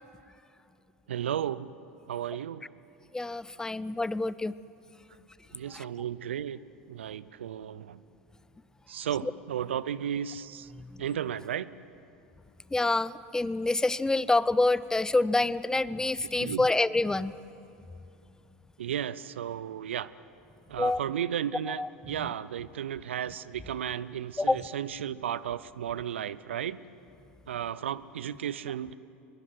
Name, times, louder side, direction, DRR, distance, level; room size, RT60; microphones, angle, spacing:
voice 1, 1.1-1.7 2.1-2.7 5.5-6.6 6.9-8.0 8.9-10.7 11.0-11.7 16.2-16.7 18.8-20.1 20.7-26.8 27.5-28.9, right 9 dB, 80° right, 18 dB, 0.6 m, -34 dB
voice 2, 3.1-4.5 5.7-5.8 10.8-10.9 12.7-17.4 20.8-21.0 21.8-21.9 24.4-24.6, left 2 dB, 10° left, 18 dB, 0.6 m, -27 dB
23.0 x 22.0 x 7.8 m, 2.8 s
hypercardioid pair, 80°, 6 cm